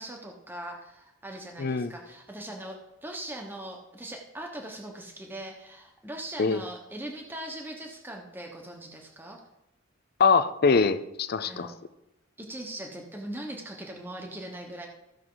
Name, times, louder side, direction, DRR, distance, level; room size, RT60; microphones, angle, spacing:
voice 1, 0.0-9.4 11.4-11.8 12.4-14.9, right 1 dB, 10° right, 1 dB, 1.1 m, -40 dB
voice 2, 1.6-1.9 6.4-6.6 10.2-11.7, left 5 dB, 50° left, 11 dB, 0.5 m, -23 dB
15.0 x 6.1 x 4.0 m, 0.90 s
head